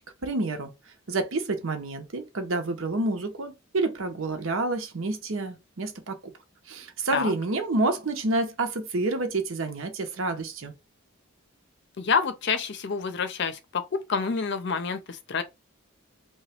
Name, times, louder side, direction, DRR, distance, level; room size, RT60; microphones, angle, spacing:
voice 1, 0.2-0.7 1.1-6.3 6.7-10.7, right 2 dB, 70° right, 0.8 m, -28 dB
voice 2, 12.0-15.4, left 5 dB, 55° left, 0.5 m, -28 dB
2.9 x 2.3 x 4.2 m
head